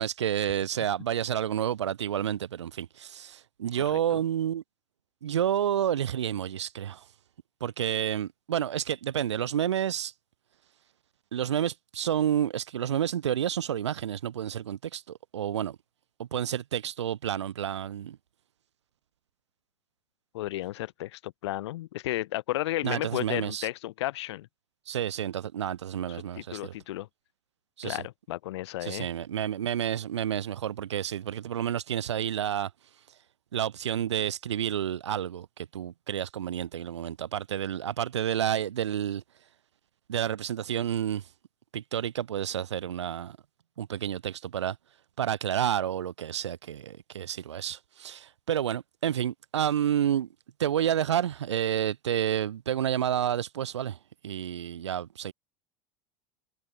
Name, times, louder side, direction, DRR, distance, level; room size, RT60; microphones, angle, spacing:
voice 1, 0.0-4.6 5.2-7.0 7.6-10.1 11.3-15.8 16.2-18.2 22.8-23.7 24.9-26.7 27.8-28.0 28.8-32.7 33.5-39.2 40.1-41.2 41.7-43.4 43.8-44.8 45.2-50.3 50.6-54.0 54.2-55.3, right 10 dB, 90° right, 6.7 m, -30 dB
voice 2, 20.3-24.5 26.1-27.1 27.8-29.1, left 16 dB, 80° left, 3.0 m, -33 dB
hypercardioid pair, 95°, 14 cm